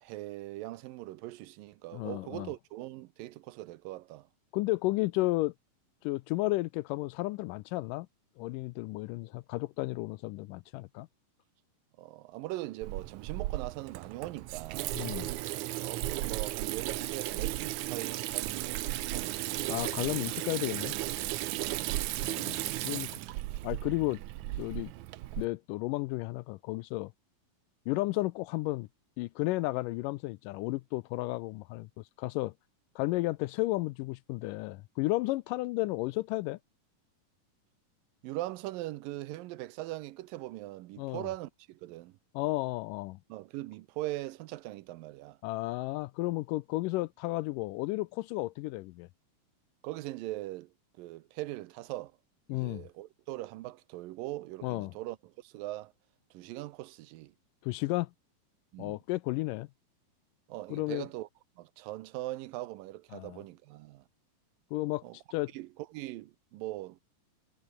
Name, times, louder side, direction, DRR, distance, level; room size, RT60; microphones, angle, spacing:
voice 1, 0.0-4.3 12.0-15.0 15.8-19.8 21.6-22.0 38.2-42.2 43.3-45.4 49.8-50.7 51.0-52.1 52.5-55.9 56.3-57.3 58.7-59.0 60.5-61.3 61.6-64.0 65.0-65.2 65.5-67.0, right 17 dB, 85° right, 2.5 m, -41 dB
voice 2, 1.9-2.5 4.5-5.5 6.0-8.1 8.4-11.1 14.9-15.3 19.7-20.9 22.2-23.1 23.6-24.2 24.6-24.9 25.4-27.1 27.9-28.9 29.2-31.9 32.2-32.5 33.0-36.6 41.0-41.3 42.3-43.2 45.4-49.1 52.5-52.9 54.6-54.9 57.6-58.1 58.8-59.7 60.7-61.1 63.1-63.4 64.7-65.0 65.3-65.5, left 20 dB, 80° left, 2.1 m, -33 dB
Water tap faucet / Sink (filling or washing), 12.8-25.5, right 16 dB, 70° right, 2.0 m, -35 dB
omnidirectional pair, 3.9 m